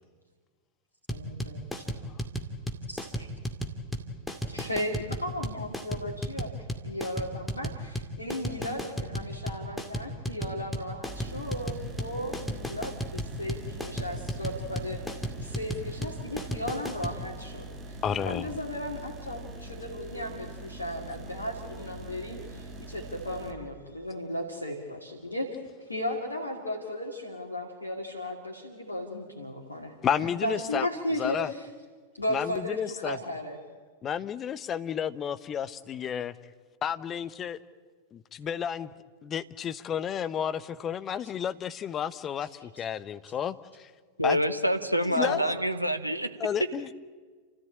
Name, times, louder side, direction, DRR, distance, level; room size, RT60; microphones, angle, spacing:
voice 1, 1.1-1.9 2.9-3.3 4.5-18.0 18.2-31.7 32.2-33.6 42.8-42.9 45.2-45.7, left 1 dB, 80° left, -1 dB, 2.4 m, -35 dB
sound 1, 1.1-17.2, equal, 5° left, 2.2 m, -34 dB
sound 2, 11.1-23.5, right 1 dB, 20° right, 2.5 m, -43 dB
voice 2, 18.0-18.5 30.0-30.9 31.2-31.5 32.3-33.2 34.0-36.3 36.8-37.6 38.1-38.9 39.2-43.9 44.2-44.4 45.0-45.4 46.4-46.9, left 8 dB, 25° left, 14 dB, 0.9 m, -31 dB
voice 3, 44.2-46.3, equal, 90° right, 8 dB, 1.3 m, -27 dB
30.0 x 14.0 x 8.9 m, 1.5 s
figure-of-eight pair, 90°, 0 cm